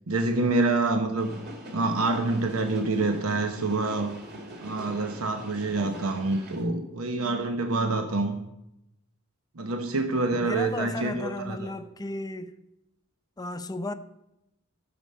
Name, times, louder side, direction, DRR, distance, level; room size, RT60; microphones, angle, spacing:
voice 1, 0.1-1.3 1.7-4.1 4.6-8.4 9.5-11.7, right 3 dB, 85° right, 1.0 m, -27 dB
sound 1, 1.2-6.6, equal, 50° right, 2.2 m, -42 dB
voice 2, 10.4-12.5 13.4-13.9, left 2 dB, 20° left, 0.6 m, -34 dB
14.0 x 7.1 x 5.5 m
head